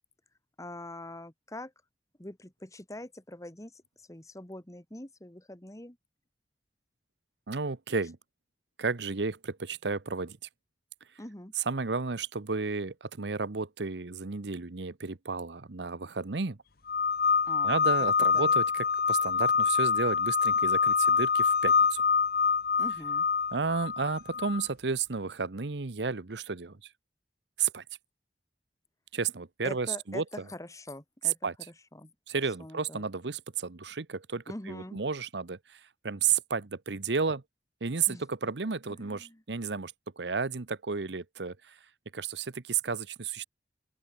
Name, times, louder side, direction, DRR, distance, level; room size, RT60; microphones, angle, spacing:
voice 1, 0.6-1.7 2.2-3.8 4.1-6.0 11.2-11.5 17.5-17.7 18.0-18.5 22.8-23.3 29.6-31.4 31.9-32.1 32.6-33.0 34.5-35.0 38.1-38.3 39.0-39.4, left 1 dB, 20° left, 1.9 m, -43 dB
voice 2, 7.5-8.2 8.8-10.4 11.6-16.6 17.6-22.0 23.5-26.8 27.6-27.8 29.1-30.2 31.2-31.5 32.3-37.4 37.8-41.8 42.1-43.4, right 5 dB, 80° right, 1.0 m, -32 dB
sound 1, 16.9-24.7, left 5 dB, 60° left, 1.2 m, -25 dB
open air
head